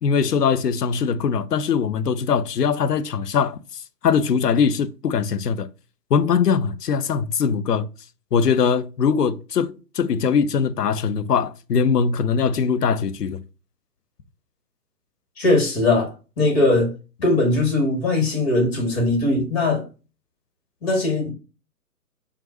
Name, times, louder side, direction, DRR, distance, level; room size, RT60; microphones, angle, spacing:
voice 1, 0.0-5.7 6.1-7.9 8.3-13.4, left 6 dB, 70° left, 0.6 m, -21 dB
voice 2, 15.4-16.9 17.2-19.9 20.8-21.3, left 2 dB, 35° left, 1.9 m, -20 dB
4.5 x 2.5 x 2.6 m
figure-of-eight pair, 135°, 49 cm